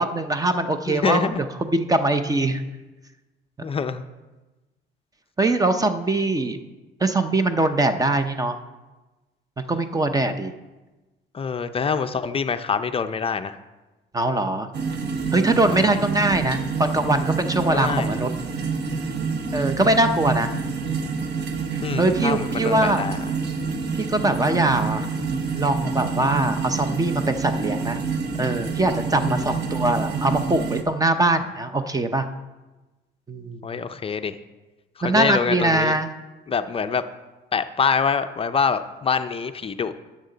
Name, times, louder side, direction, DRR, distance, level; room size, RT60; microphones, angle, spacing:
voice 1, 0.0-1.3 1.6-2.6 5.4-6.6 7.0-8.6 9.6-10.5 14.1-14.7 15.3-18.3 19.5-20.5 21.7-23.0 24.0-25.1 25.5-28.0 28.4-32.3 33.3-33.6 35.0-36.1, right 2 dB, 20° right, 9 dB, 0.6 m, -22 dB
voice 2, 0.9-1.4 3.6-4.0 11.3-13.6 15.7-16.0 17.7-18.1 21.8-23.2 29.3-29.5 33.6-34.4 35.0-36.0 36.5-37.0 37.5-39.9, left 5 dB, 30° left, 9 dB, 0.5 m, -25 dB
sound 1, 14.7-30.8, right 5 dB, 55° right, 1.2 m, -27 dB
12.0 x 7.4 x 3.9 m, 1.1 s
cardioid pair, 110°, 20 cm